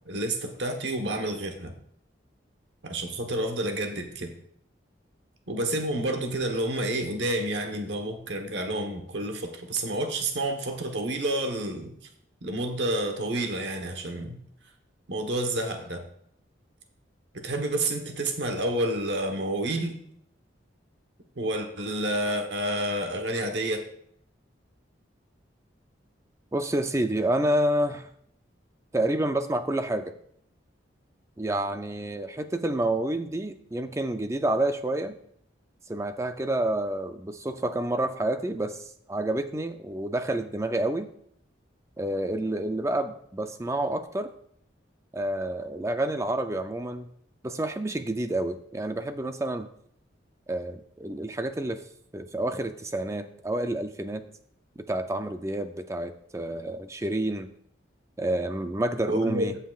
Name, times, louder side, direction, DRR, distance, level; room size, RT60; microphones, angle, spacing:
voice 1, 0.0-1.7 2.8-4.3 5.5-11.9 12.4-14.4 15.1-16.1 17.3-20.0 21.4-23.8 59.1-59.5, right 1 dB, 70° right, 4 dB, 1.1 m, -29 dB
voice 2, 26.5-28.1 28.9-30.1 31.4-35.2 35.9-41.1 42.0-44.3 45.1-47.1 47.4-49.7 50.5-51.8 52.1-54.2 54.9-57.5 58.2-59.6, right 1 dB, 15° right, 8 dB, 0.4 m, -29 dB
15.5 x 5.7 x 2.4 m, 0.67 s
head